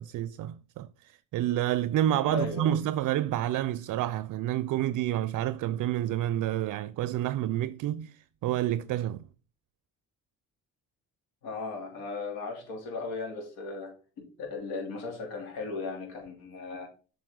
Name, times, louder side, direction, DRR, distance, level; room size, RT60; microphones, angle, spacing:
voice 1, 0.0-9.3, right 12 dB, 55° right, 0.4 m, -29 dB
voice 2, 2.3-2.7 11.4-16.9, left 3 dB, 85° left, 3.0 m, -37 dB
7.7 x 5.1 x 3.7 m
cardioid pair, 85°, 36 cm